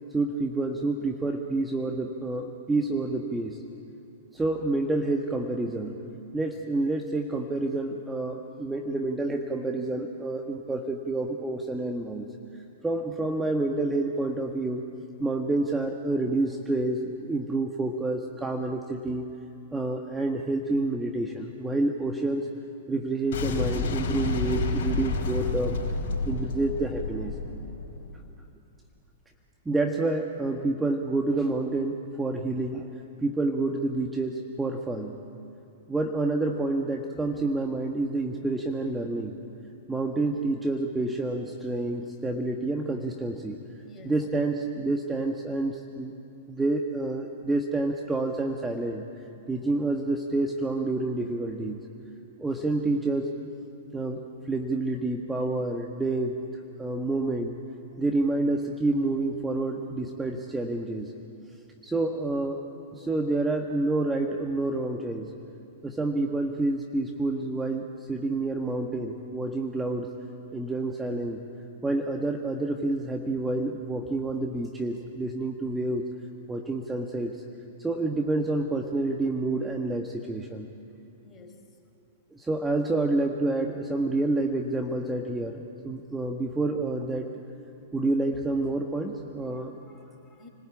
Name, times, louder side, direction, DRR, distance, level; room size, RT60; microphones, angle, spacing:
voice 1, 0.1-3.6 4.3-6.0 6.3-12.3 12.8-14.9 15.2-19.3 19.7-22.5 22.9-25.8 26.2-27.3 29.6-32.9 33.2-35.2 35.9-39.4 39.9-43.6 44.0-46.1 46.5-49.1 49.5-51.8 52.4-53.3 53.9-56.4 56.8-57.6 58.0-61.1 61.8-62.6 62.9-65.3 65.8-70.1 70.5-71.4 71.8-76.0 76.5-77.4 77.8-80.7 82.3-87.3 87.9-89.7, right 2 dB, 10° right, 3 dB, 1.6 m, -28 dB
Boom, 23.3-28.2, left 3 dB, 55° left, 4.8 m, -30 dB
voice 2, 43.8-44.3 81.2-81.6 89.4-90.5, left 3 dB, 20° left, 2 dB, 4.5 m, -52 dB
29.0 x 20.0 x 8.7 m, 2.6 s
figure-of-eight pair, 105°, 0 cm